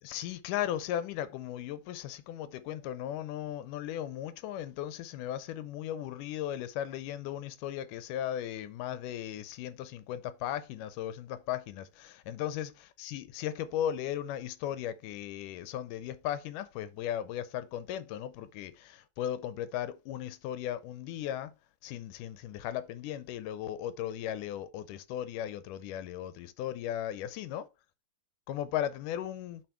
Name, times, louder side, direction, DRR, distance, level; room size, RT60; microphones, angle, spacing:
voice 1, 0.0-21.5 21.8-27.7 28.5-29.6, left 11 dB, 80° left, 2.0 m, -36 dB
7.8 x 4.5 x 4.4 m
omnidirectional pair, 4.0 m